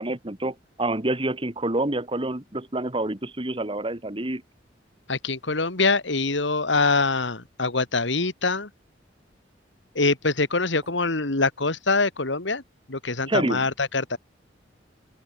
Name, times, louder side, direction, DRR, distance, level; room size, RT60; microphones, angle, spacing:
voice 1, 0.0-4.4 13.3-13.6, right 2 dB, 30° right, 1.9 m, -27 dB
voice 2, 5.1-8.7 9.9-12.6 12.9-14.2, left 3 dB, 75° left, 2.6 m, -24 dB
open air
head